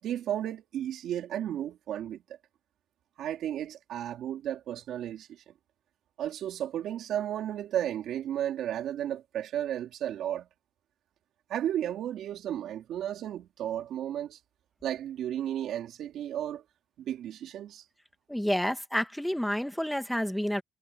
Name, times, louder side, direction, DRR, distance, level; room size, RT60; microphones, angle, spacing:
voice 1, 0.0-2.2 3.2-5.4 6.2-10.5 11.5-14.4 14.8-16.6 17.0-17.8, right 11 dB, 90° right, 4.0 m, -33 dB
voice 2, 18.3-20.6, equal, 5° left, 2.1 m, -29 dB
cardioid pair, 80°, 0 cm